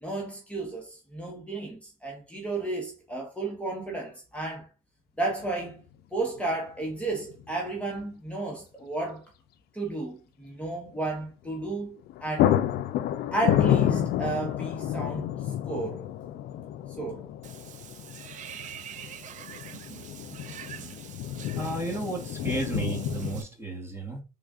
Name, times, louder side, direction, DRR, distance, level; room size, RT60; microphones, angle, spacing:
voice 1, 0.0-4.7 5.2-9.2 9.7-12.5 13.3-16.1 17.0-17.2, right 2 dB, 5° left, 0.9 m, -33 dB
sound 1, 5.4-5.5 7.1-7.5 7.8-7.9 11.6-11.8 12.1-23.5, left 11 dB, 70° left, 0.4 m, -30 dB
Water / Bathtub (filling or washing), 17.4-23.4, right 9 dB, 45° right, 0.4 m, -45 dB
voice 2, 21.6-24.2, right 2 dB, 15° right, 1.1 m, -33 dB
3.4 x 2.4 x 3.6 m
cardioid pair, 110°, 17 cm